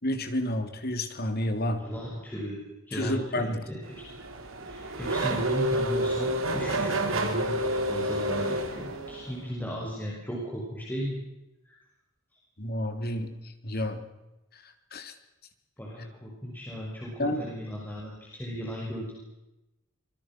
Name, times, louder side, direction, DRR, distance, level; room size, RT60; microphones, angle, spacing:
voice 1, 0.0-1.8 2.9-3.6 12.6-14.0 14.9-15.1 17.2-17.4, left 1 dB, 50° left, 7 dB, 3.3 m, -30 dB
voice 2, 1.8-2.6 2.9-4.1 4.6-11.2 11.6-11.8 15.8-19.1, equal, 10° left, -4 dB, 6.3 m, -36 dB
Race car auto racing / Accelerating revving vroom, 3.9-9.4, right 1 dB, 75° right, 3.9 m, -29 dB
25.5 x 24.0 x 6.3 m, 0.96 s
head